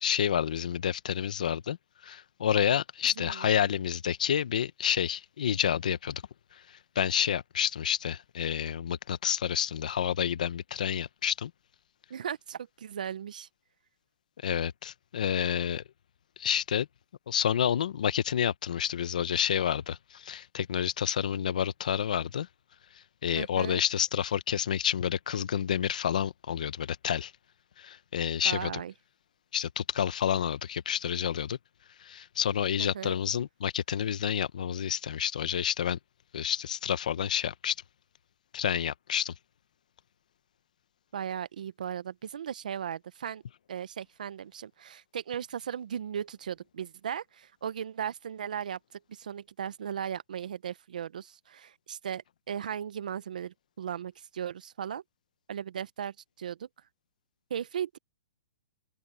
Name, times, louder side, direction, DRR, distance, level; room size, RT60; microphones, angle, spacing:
voice 1, 0.0-1.8 2.0-6.2 6.5-11.5 14.4-15.8 16.4-16.9 17.3-22.5 23.2-27.3 27.8-28.7 29.5-31.6 32.0-36.0 36.3-37.7 38.5-39.3, left 9 dB, 75° left, 0.9 m, -29 dB
voice 2, 12.1-13.5 23.4-23.8 28.4-28.9 32.8-33.2 41.1-43.4 43.7-55.0 55.5-56.7 57.5-58.0, right 8 dB, 80° right, 0.7 m, -37 dB
open air
hypercardioid pair, 165°, 4 cm